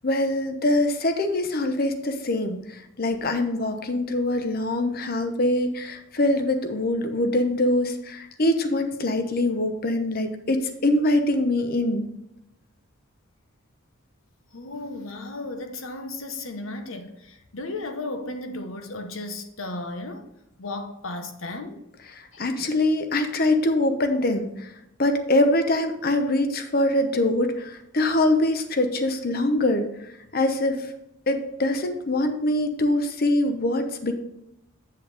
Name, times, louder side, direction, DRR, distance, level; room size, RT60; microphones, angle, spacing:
voice 1, 0.0-2.6 3.0-12.1 22.4-24.5 25.0-29.9 30.3-30.8 31.3-34.1, left 1 dB, 45° left, 0.9 m, -23 dB
voice 2, 14.5-20.3 20.6-21.8 22.3-22.5, left 2 dB, 80° left, 1.1 m, -35 dB
8.1 x 7.7 x 3.4 m
head